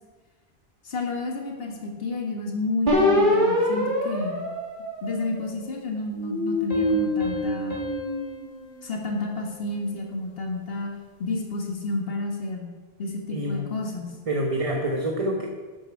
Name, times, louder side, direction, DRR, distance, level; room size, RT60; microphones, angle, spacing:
voice 1, 0.8-4.4 5.0-7.8 8.8-10.9 11.2-12.7 13.0-14.1, left 2 dB, 65° left, 0 dB, 1.8 m, -30 dB
sound 1, 2.9-5.6 6.1-8.6, left 1 dB, 50° right, 2.6 m, -25 dB
Piano, 6.7-10.0, left 5 dB, 35° left, 3.0 m, -38 dB
voice 2, 13.3-13.7 14.3-15.5, right 1 dB, 35° right, 1 dB, 1.1 m, -27 dB
12.0 x 9.3 x 4.7 m, 1.4 s
omnidirectional pair, 1.1 m